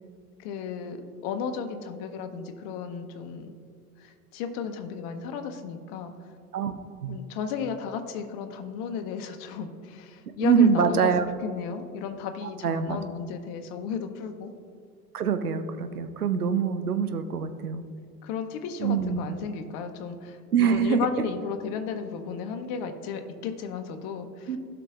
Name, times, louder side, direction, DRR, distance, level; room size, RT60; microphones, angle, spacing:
voice 1, 0.4-1.0 1.2-3.5 4.0-6.1 7.1-11.1 11.4-14.5 18.2-24.6, left 6 dB, 50° left, 7 dB, 1.0 m, -34 dB
voice 2, 10.4-11.3 12.4-13.0 15.1-17.9 18.8-19.3 20.5-21.1 24.5-24.6, right 7 dB, 85° right, 9 dB, 0.7 m, -24 dB
16.0 x 5.8 x 2.5 m, 2.2 s
figure-of-eight pair, 75°, 44 cm